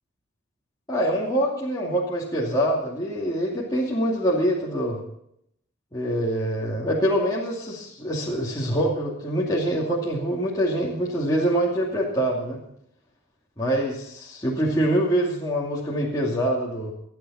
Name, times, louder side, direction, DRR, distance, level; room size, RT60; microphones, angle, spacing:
voice 1, 0.9-5.0 5.9-12.6 13.6-16.9, right 1 dB, 20° left, -5 dB, 2.6 m, -25 dB
25.0 x 9.1 x 4.3 m, 0.72 s
head